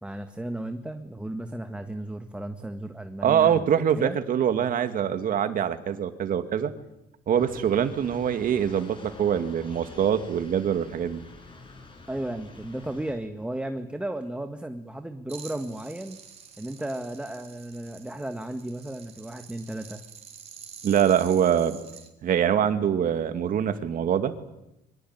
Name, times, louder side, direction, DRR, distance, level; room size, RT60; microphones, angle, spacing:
voice 1, 0.0-3.7 4.0-4.2 12.1-16.2 16.6-20.0, right 1 dB, 5° right, 7 dB, 1.7 m, -34 dB
voice 2, 3.2-6.7 7.3-11.2 20.8-21.8 22.2-24.3, right 9 dB, 55° right, 9 dB, 2.4 m, -24 dB
wet traffic ortf, 7.4-13.1, left 3 dB, 30° left, 7.7 m, -47 dB
sound 1, 15.3-22.1, right 6 dB, 40° right, 4.5 m, -47 dB
25.0 x 23.5 x 9.4 m, 0.89 s
cardioid pair, 110°, 17 cm